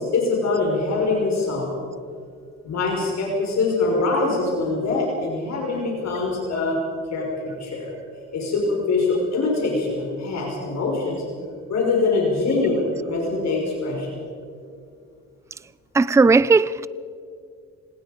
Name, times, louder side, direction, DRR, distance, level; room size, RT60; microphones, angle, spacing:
voice 1, 0.0-1.7 2.6-6.8 7.1-7.9 8.3-11.2 11.7-14.2, left 3 dB, 60° left, 5.5 m, -23 dB
voice 2, 15.9-16.9, right 4 dB, 10° right, 0.4 m, -16 dB
26.0 x 20.0 x 5.2 m
cardioid pair, 90°, 30 cm